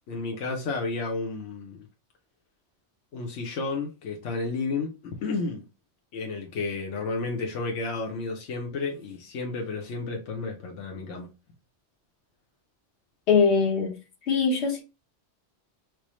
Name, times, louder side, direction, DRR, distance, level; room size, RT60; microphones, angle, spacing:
voice 1, 0.1-1.9 3.1-5.6 6.1-11.3, left 3 dB, 90° left, 1.1 m, -32 dB
voice 2, 13.3-14.0 14.3-14.8, left 5 dB, 70° left, 1.2 m, -22 dB
4.7 x 2.0 x 3.0 m
omnidirectional pair, 1.2 m